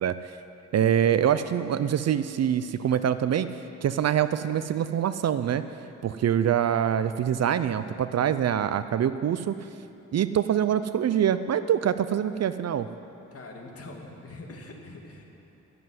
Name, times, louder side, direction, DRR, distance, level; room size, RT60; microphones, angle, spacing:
voice 1, 0.0-0.3 0.7-3.5 3.8-5.6 6.0-9.6 10.1-12.9, right 9 dB, 50° right, 12 dB, 0.5 m, -25 dB
voice 2, 13.3-15.3, left 2 dB, 45° left, 0 dB, 2.2 m, -43 dB
12.5 x 7.7 x 9.5 m, 2.8 s
cardioid pair, 95°, 33 cm